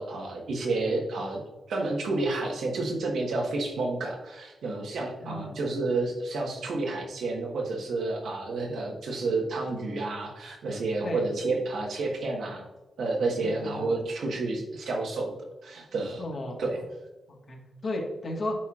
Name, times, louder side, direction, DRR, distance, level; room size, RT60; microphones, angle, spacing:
voice 1, 0.0-1.4 1.7-12.7 13.0-15.4 15.6-16.2 16.6-16.8, right 3 dB, 85° right, 0 dB, 1.3 m, -30 dB
voice 2, 5.2-5.5 11.0-11.2 13.4-13.9 16.2-16.6 17.5-18.5, left 1 dB, 55° left, 1 dB, 1.5 m, -34 dB
8.9 x 4.4 x 2.4 m, 1.1 s
cardioid pair, 85°, 0 cm